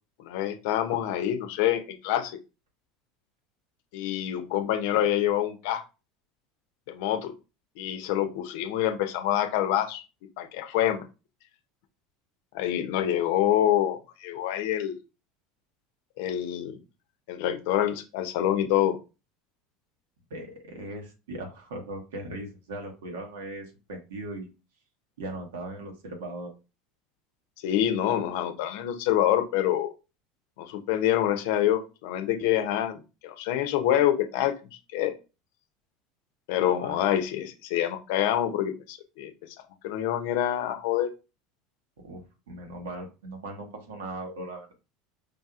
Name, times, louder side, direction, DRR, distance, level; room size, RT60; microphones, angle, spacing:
voice 1, 0.2-2.4 3.9-5.8 6.9-7.3 7.8-10.0 10.4-11.0 12.5-15.0 16.2-16.8 17.3-19.0 27.6-29.9 30.6-34.5 34.9-35.1 36.5-39.3 39.8-41.1, left 11 dB, 70° left, 7 dB, 0.6 m, -26 dB
voice 2, 20.3-24.5 25.2-26.5 36.6-37.0 42.0-44.8, right 1 dB, 80° right, 3 dB, 1.1 m, -39 dB
5.1 x 2.7 x 2.4 m, 0.29 s
hypercardioid pair, 80°, 0 cm